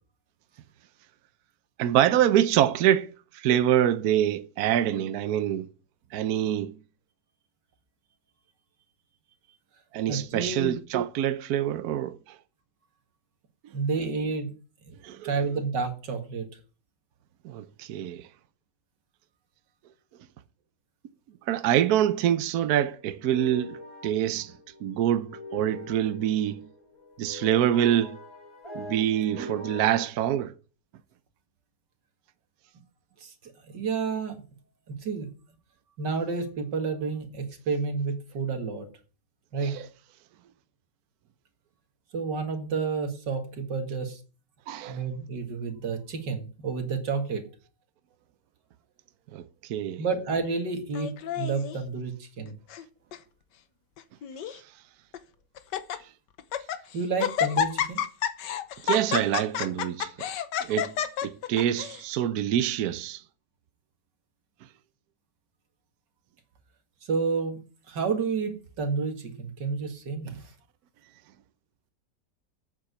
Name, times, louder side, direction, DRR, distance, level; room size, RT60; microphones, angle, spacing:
voice 1, 1.8-3.1 3.4-5.7 6.1-6.7 9.9-12.1 15.0-15.3 17.4-18.2 21.5-23.8 24.0-24.5 24.8-26.6 27.2-28.2 28.8-30.5 39.6-39.8 44.7-45.0 49.3-49.4 49.7-50.0 58.8-60.1 60.7-60.9 61.2-63.2, right 11 dB, 70° right, 1.1 m, -25 dB
voice 2, 10.1-10.8 13.7-14.5 14.8-15.0 15.2-16.5 33.2-34.4 34.9-35.3 36.0-38.9 39.5-39.8 42.1-44.2 44.8-47.5 50.0-52.6 56.9-58.0 67.0-67.6 67.9-70.5, right 4 dB, 90° right, 2.5 m, -30 dB
sound 1, 22.1-30.1, left 2 dB, 15° left, 3.6 m, -44 dB
Laughter, 50.9-51.8 52.5-52.8 53.1-53.2 54.0-54.6 55.1-55.2 55.6-56.0 56.4-56.8 57.2-62.0, left 9 dB, 85° left, 1.6 m, -30 dB
8.8 x 7.4 x 8.1 m
omnidirectional pair, 1.8 m